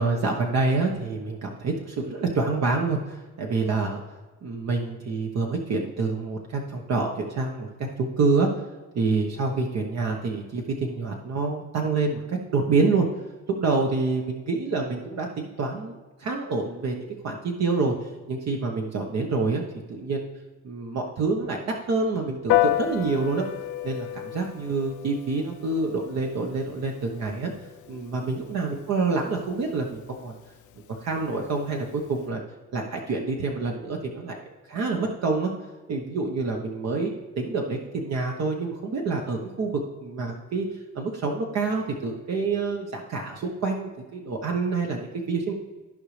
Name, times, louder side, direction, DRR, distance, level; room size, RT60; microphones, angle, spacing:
voice 1, 0.0-4.0 4.4-8.5 8.9-13.1 13.6-19.6 19.9-20.3 20.6-23.4 23.8-27.5 27.9-30.4 31.0-32.4 32.7-35.5 35.9-40.7 40.9-45.5, right 3 dB, 60° right, 1 dB, 1.1 m, -27 dB
Piano, 22.5-32.2, left 14 dB, 75° left, 0.6 m, -32 dB
14.5 x 5.1 x 3.3 m, 1.3 s
cardioid pair, 90°, 30 cm